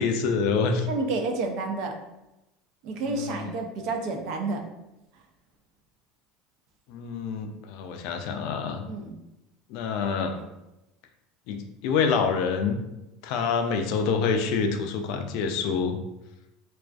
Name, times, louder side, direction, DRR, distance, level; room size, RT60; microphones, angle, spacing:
voice 1, 0.0-0.9 3.0-3.5 6.9-8.8 9.7-10.4 11.5-11.6 11.8-12.8 13.2-16.0, left 5 dB, 65° left, 5 dB, 0.3 m, -26 dB
voice 2, 0.9-2.0 2.8-4.6 8.9-9.1 10.3-10.4, right 3 dB, 55° right, 4 dB, 0.4 m, -30 dB
2.4 x 2.3 x 2.3 m, 0.93 s
supercardioid pair, 135°, 0 cm